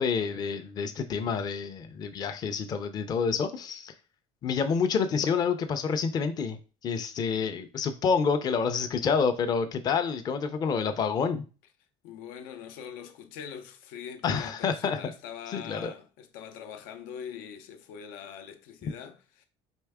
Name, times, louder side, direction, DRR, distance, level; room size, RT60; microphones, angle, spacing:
voice 1, 0.0-3.9 4.4-6.6 6.8-11.4 14.2-15.1 15.5-15.9 18.8-18.9, left 6 dB, 30° left, 0.5 m, -28 dB
voice 2, 12.0-19.5, left 8 dB, 90° left, 0.7 m, -43 dB
4.4 x 3.3 x 3.5 m
cardioid pair, 170°, 14 cm